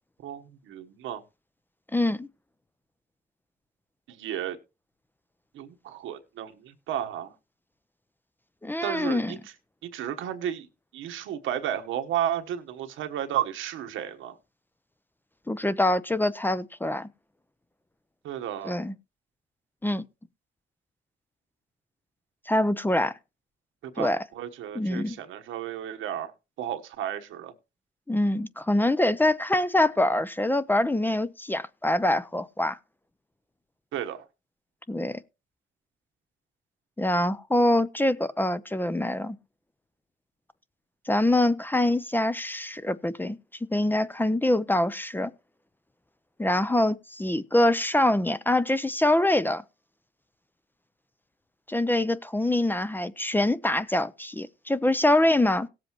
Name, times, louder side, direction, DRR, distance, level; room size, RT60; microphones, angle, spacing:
voice 1, 0.2-1.2 4.1-4.6 5.5-7.3 8.8-9.5 9.8-10.7 10.9-14.4 18.2-18.8 23.8-26.3 26.6-27.5 33.9-34.2, right 10 dB, 85° right, 1.3 m, -33 dB
voice 2, 1.9-2.3 8.6-9.4 15.5-17.1 18.6-18.9 19.8-20.0 22.5-23.1 24.0-24.2 24.7-25.2 28.1-32.8 34.9-35.2 37.0-39.4 41.1-43.4 43.7-45.3 46.4-49.6 51.7-55.7, left 1 dB, 10° left, 0.6 m, -24 dB
18.0 x 7.6 x 3.0 m
cardioid pair, 90°, 20 cm